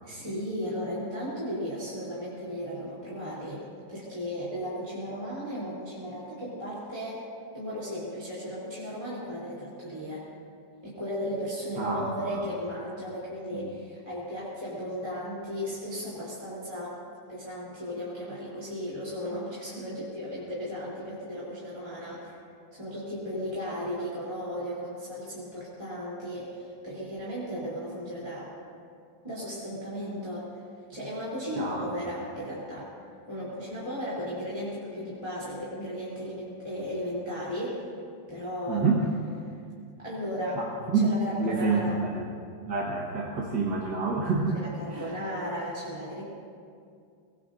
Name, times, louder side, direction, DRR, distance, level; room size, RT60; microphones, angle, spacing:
voice 1, 0.0-7.2 7.5-10.2 10.8-17.0 17.3-22.4 22.7-28.5 29.2-30.5 30.9-32.9 33.3-37.8 38.3-38.9 40.0-40.6 40.9-42.0 44.5-46.2, equal, 15° right, -9 dB, 3.5 m, -35 dB
voice 2, 11.8-12.5 13.5-13.7 31.5-31.9 38.7-39.0 40.6-41.1 41.4-42.3 42.7-44.6 44.9-45.1, right 4 dB, 60° right, -3 dB, 2.0 m, -28 dB
23.0 x 20.5 x 2.7 m, 2.3 s
omnidirectional pair, 2.1 m